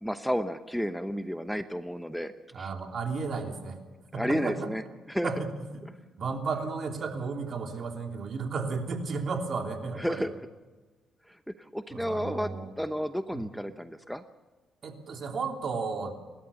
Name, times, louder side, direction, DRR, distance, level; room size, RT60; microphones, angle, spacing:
voice 1, 0.0-2.7 4.1-4.8 5.1-5.3 10.0-10.3 11.3-14.2, equal, ahead, 9 dB, 0.9 m, -32 dB
voice 2, 2.5-3.8 4.1-4.7 5.2-5.8 6.2-10.3 11.9-12.7 13.3-13.4 14.8-16.1, right 4 dB, 55° right, 3 dB, 3.2 m, -33 dB
29.5 x 13.0 x 7.0 m, 1.3 s
cardioid pair, 90°, 0 cm